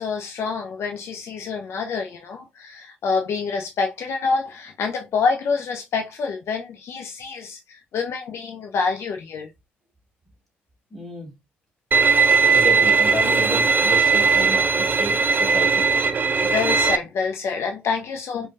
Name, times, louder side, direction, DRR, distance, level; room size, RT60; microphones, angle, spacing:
voice 1, 0.0-9.5 16.4-18.5, left 5 dB, 45° left, 0.5 m, -27 dB
voice 2, 10.9-11.3 12.5-15.9, equal, 5° left, 1.7 m, -31 dB
Bowed string instrument, 11.9-17.0, right 5 dB, 30° right, 0.5 m, -18 dB
4.9 x 2.3 x 2.3 m
figure-of-eight pair, 50°, 6 cm